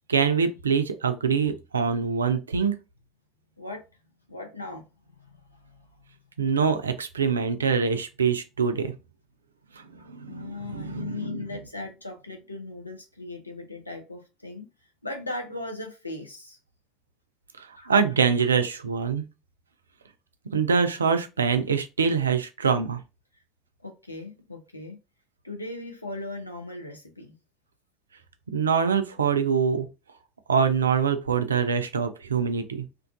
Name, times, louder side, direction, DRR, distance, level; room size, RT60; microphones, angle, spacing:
voice 1, 0.1-2.8 6.4-8.9 9.8-11.5 17.6-19.2 20.5-23.0 28.5-29.9 30.5-32.8, right 6 dB, 80° right, 0.3 m, -24 dB
voice 2, 4.3-5.9 10.2-14.7 15.0-16.6 17.8-17.9 23.8-25.0 25.4-27.3, left 2 dB, 90° left, 0.5 m, -38 dB
2.4 x 2.2 x 2.4 m
figure-of-eight pair, 65°, 0 cm